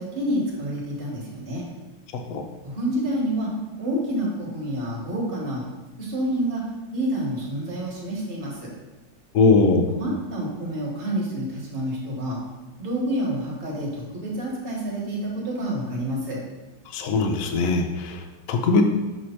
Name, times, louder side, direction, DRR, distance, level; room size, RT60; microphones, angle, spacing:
voice 1, 0.0-1.6 2.6-3.5 3.8-5.7 6.0-6.6 6.9-8.7 9.9-12.4 12.8-16.4, right 1 dB, 35° right, -4 dB, 1.4 m, -28 dB
voice 2, 2.1-2.4 9.3-9.9 16.9-18.8, left 4 dB, 70° left, 4 dB, 0.8 m, -21 dB
6.3 x 3.4 x 4.3 m, 1.1 s
omnidirectional pair, 2.0 m